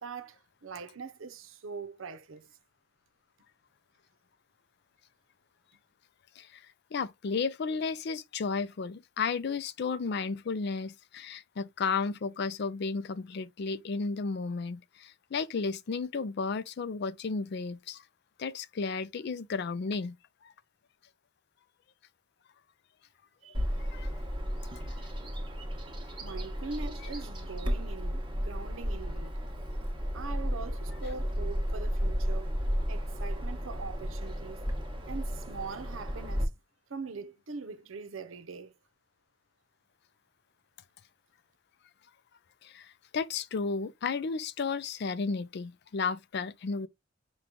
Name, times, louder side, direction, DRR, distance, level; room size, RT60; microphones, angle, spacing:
voice 1, 0.0-2.6 23.4-23.6 26.2-29.4 30.1-32.6 32.9-34.6 35.1-36.6 36.9-38.7, right 4 dB, 75° right, 0.7 m, -42 dB
voice 2, 6.9-18.0 18.4-20.2 23.9-24.1 42.6-46.9, left 4 dB, 55° left, 0.4 m, -33 dB
Bird vocalization bird call bird song, 23.5-36.4, equal, 25° right, 1.0 m, -33 dB
6.0 x 2.3 x 3.6 m
head